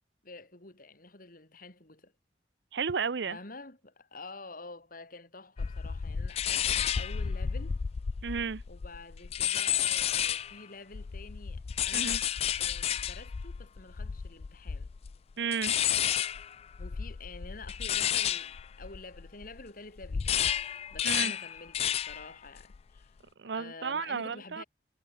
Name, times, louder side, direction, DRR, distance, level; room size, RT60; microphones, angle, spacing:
voice 1, 0.2-2.1 3.3-7.8 8.7-12.3 12.6-14.9 16.8-20.6 20.9-23.1 23.5-24.6, left 3 dB, 50° left, 3.7 m, -48 dB
voice 2, 2.7-3.4 8.2-8.6 11.9-12.2 15.4-15.8 21.0-21.3 23.4-24.6, right 6 dB, 70° right, 0.6 m, -33 dB
sound 1, 5.6-10.6 10.9-19.6 20.0-22.3 22.6-23.0, left 9 dB, 35° left, 0.3 m, -31 dB
head